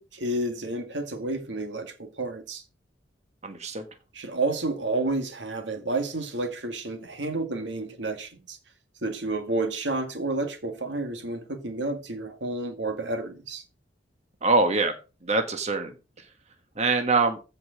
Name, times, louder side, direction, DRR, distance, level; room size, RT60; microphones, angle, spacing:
voice 1, 0.0-2.6 4.1-8.6 9.0-13.6, right 2 dB, 80° right, 2.0 m, -30 dB
voice 2, 3.4-3.8 14.4-15.0 15.2-15.9 16.8-17.4, right 3 dB, 40° right, 1.5 m, -23 dB
15.0 x 5.4 x 5.1 m
head